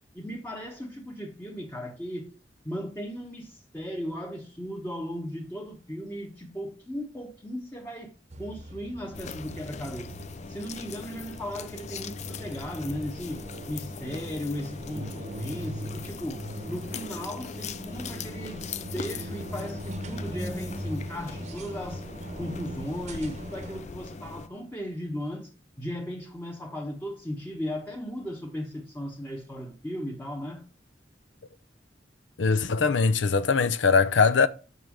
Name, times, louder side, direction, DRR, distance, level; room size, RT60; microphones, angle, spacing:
voice 1, 0.1-2.3 2.6-8.1 8.4-10.1 10.5-22.0 22.4-25.5 25.8-30.6, equal, 10° left, 1.1 m, -36 dB
sound 1, 8.3-23.8, equal, 40° right, 0.9 m, -40 dB
sound 2, 9.1-24.5, left 5 dB, 40° left, 0.4 m, -41 dB
voice 2, 32.4-34.5, left 5 dB, 80° left, 0.6 m, -21 dB
6.3 x 5.4 x 6.3 m
head